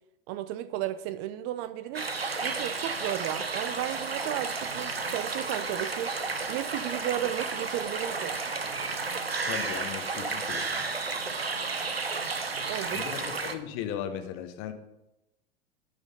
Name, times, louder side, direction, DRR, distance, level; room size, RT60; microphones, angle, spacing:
voice 1, 0.3-2.1 2.4-6.1 6.5-8.4 12.7-13.1, right 13 dB, 35° right, 13 dB, 0.4 m, -34 dB
sound 1, 1.9-13.5, right 4 dB, 85° right, 0.7 m, -32 dB
voice 2, 9.4-10.8 12.9-14.7, left 9 dB, 45° left, 9 dB, 1.0 m, -37 dB
9.2 x 5.0 x 5.3 m, 0.93 s
figure-of-eight pair, 85°, 29 cm